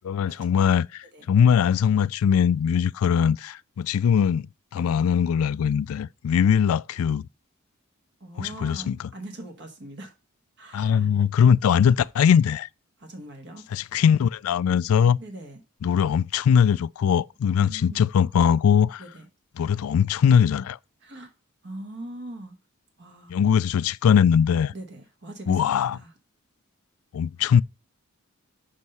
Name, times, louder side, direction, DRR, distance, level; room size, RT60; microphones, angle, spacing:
voice 1, 0.0-4.5 4.7-7.3 8.4-9.0 10.7-12.7 13.7-15.2 15.8-19.0 19.6-20.8 23.3-24.7 25.5-26.0 27.1-27.6, left 7 dB, 85° left, 0.3 m, -21 dB
voice 2, 8.2-10.1 10.6-11.1 13.0-13.7 15.2-15.6 17.4-18.0 19.0-19.3 21.0-21.3 21.6-22.6 23.0-23.4 24.7-26.1, right 1 dB, 55° right, 1.3 m, -41 dB
6.4 x 5.3 x 5.5 m
head